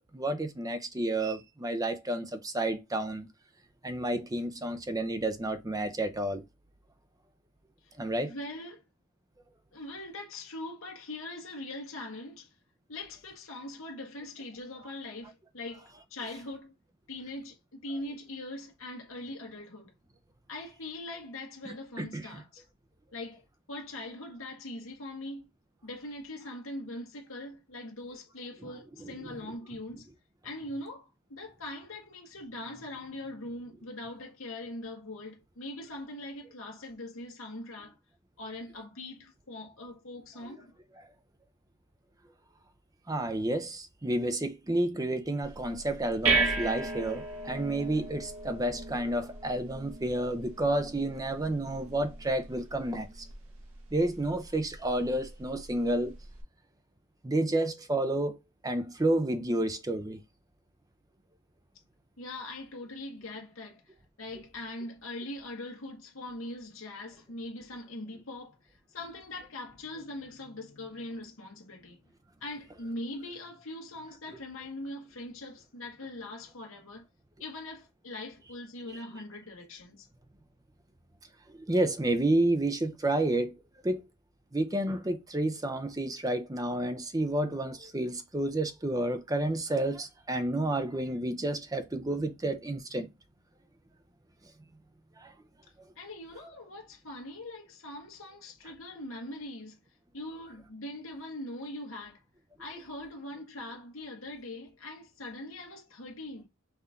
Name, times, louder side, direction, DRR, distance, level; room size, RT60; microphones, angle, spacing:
voice 1, 0.0-3.3 3.8-6.4 8.0-8.3 21.7-22.4 28.6-28.7 29.0-29.4 43.1-53.3 53.9-56.2 57.2-60.2 81.5-84.1 84.5-93.1 95.2-95.3, right 1 dB, 15° right, 0.5 m, -30 dB
voice 2, 8.2-8.8 9.7-12.5 12.9-16.7 17.1-19.9 20.5-22.6 23.1-23.4 23.7-25.5 25.8-30.1 30.4-38.0 38.4-40.7 62.2-72.0 72.4-77.1 77.4-80.1 95.9-99.8 100.1-102.2 102.6-106.5, left 1 dB, 65° left, 1.3 m, -42 dB
sound 1, 45.4-56.4, right 4 dB, 70° right, 1.3 m, -36 dB
5.6 x 2.6 x 3.5 m
head